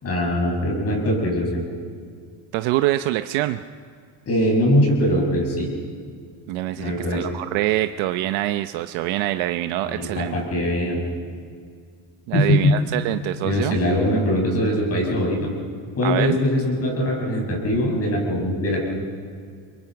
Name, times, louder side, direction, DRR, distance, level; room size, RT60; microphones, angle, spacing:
voice 1, 0.0-1.6 4.3-5.7 6.8-7.2 9.8-11.0 12.3-12.8 13.4-15.5 16.0-18.9, left 1 dB, 30° left, 0 dB, 6.1 m, -21 dB
voice 2, 2.5-3.6 6.5-10.3 12.3-13.8 16.0-16.4, right 15 dB, 75° right, 9 dB, 0.9 m, -25 dB
30.0 x 23.5 x 6.0 m, 2.1 s
cardioid pair, 160°, 48 cm